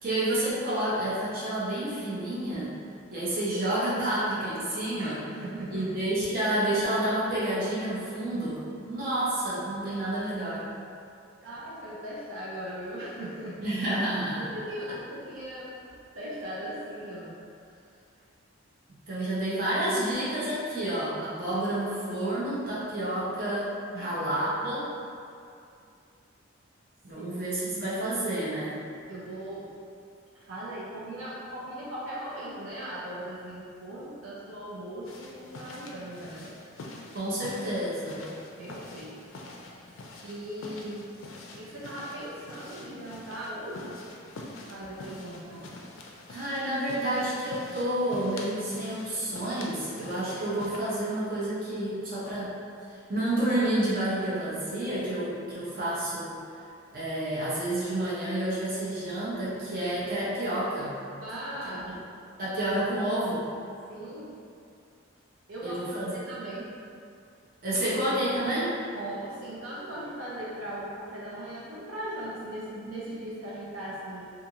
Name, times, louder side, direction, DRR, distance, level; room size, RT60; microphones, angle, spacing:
voice 1, 0.0-2.7 3.1-5.2 5.7-10.7 13.6-14.5 18.9-24.9 27.0-28.8 37.1-38.3 46.3-52.5 53.1-56.4 56.9-61.0 61.9-62.0 62.4-63.4 65.6-66.1 67.6-68.8, right 1 dB, 45° right, -9 dB, 0.7 m, -29 dB
voice 2, 5.0-5.9 11.4-13.7 14.3-17.4 23.9-24.3 27.2-27.3 27.7-27.8 29.1-29.8 30.3-36.6 38.6-39.2 39.5-39.9 40.2-41.0 41.6-43.9 44.7-45.7 61.2-61.9 63.9-64.4 65.5-66.8 68.9-74.3, right 1 dB, 80° right, -7 dB, 0.5 m, -39 dB
sound 1, 35.0-50.8, left 2 dB, 75° left, 0.4 m, -45 dB
2.5 x 2.4 x 2.8 m, 2.4 s
head